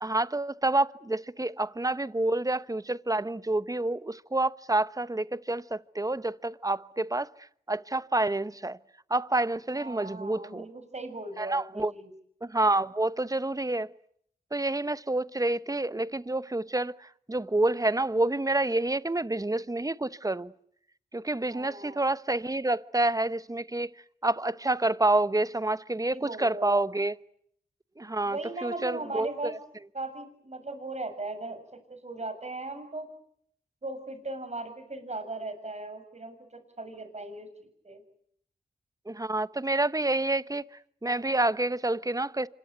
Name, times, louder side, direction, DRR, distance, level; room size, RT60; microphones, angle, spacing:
voice 1, 0.0-7.3 7.7-8.8 9.1-10.7 11.4-11.9 12.4-13.9 14.5-20.5 21.1-23.9 24.2-27.1 28.0-29.3 39.1-40.6 41.0-42.5, right 2 dB, 20° right, 1.0 m, -28 dB
voice 2, 9.8-12.1 21.5-22.0 26.0-26.9 28.2-29.6 29.9-33.2 33.8-38.0, right 2 dB, 40° right, 7.0 m, -38 dB
26.0 x 22.0 x 9.3 m
cardioid pair, 45°, 18 cm